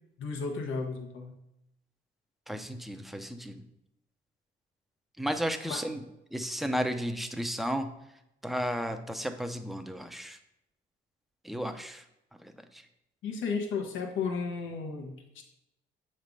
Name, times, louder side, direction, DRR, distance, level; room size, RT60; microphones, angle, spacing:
voice 1, 0.2-1.3 5.6-5.8 13.2-15.4, left 5 dB, 80° left, 3 dB, 1.1 m, -34 dB
voice 2, 2.5-3.6 5.2-6.0 6.3-7.9 8.4-10.4 11.4-12.0 12.4-12.8, equal, ahead, 7 dB, 0.6 m, -33 dB
7.1 x 3.3 x 5.2 m, 0.84 s
cardioid pair, 90°, 20 cm